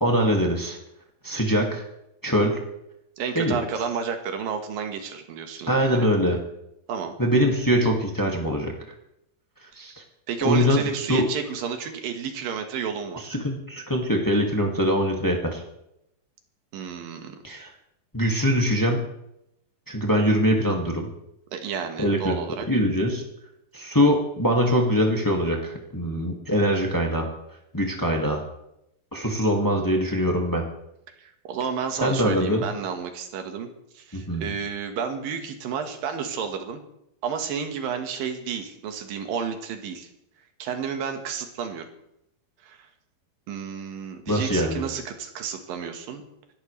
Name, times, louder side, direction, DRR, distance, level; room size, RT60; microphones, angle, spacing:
voice 1, 0.0-0.8 1.2-1.8 2.2-2.6 3.3-3.6 5.7-6.4 7.2-8.7 9.8-9.9 10.4-10.8 11.1-11.2 13.3-15.6 17.4-17.7 18.1-19.0 19.9-21.1 22.0-22.4 22.7-23.2 23.7-27.3 27.7-28.4 29.1-30.6 32.0-32.6 34.1-34.5 44.3-44.8, equal, 10° left, 0 dB, 0.8 m, -23 dB
voice 2, 3.2-6.0 6.9-7.1 9.8-9.9 10.3-13.3 16.7-17.4 21.5-22.7 31.2-33.7 33.9-36.8 37.2-40.1 40.6-41.9 42.6-42.8 43.5-46.2, right 7 dB, 75° right, 6 dB, 3.2 m, -31 dB
27.0 x 12.5 x 3.3 m, 0.81 s
omnidirectional pair, 4.2 m